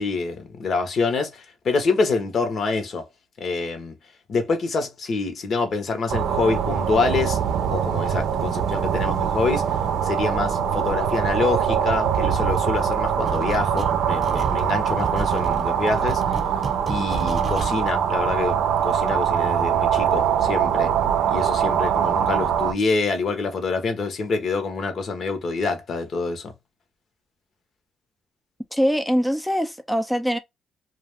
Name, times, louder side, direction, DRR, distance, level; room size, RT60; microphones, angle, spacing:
voice 1, 0.0-3.0 3.4-3.9 4.3-7.4 7.7-9.7 10.0-16.2 16.9-20.9 21.3-26.5, left 4 dB, 55° left, 0.9 m, -26 dB
sound 1, 6.1-22.7, right 8 dB, 80° right, 0.5 m, -23 dB
sound 2, 13.2-13.9 14.2-17.7, right 4 dB, 35° right, 0.8 m, -31 dB
voice 2, 28.7-30.4, equal, ahead, 0.4 m, -22 dB
2.4 x 2.3 x 3.3 m
cardioid pair, 90°, 0 cm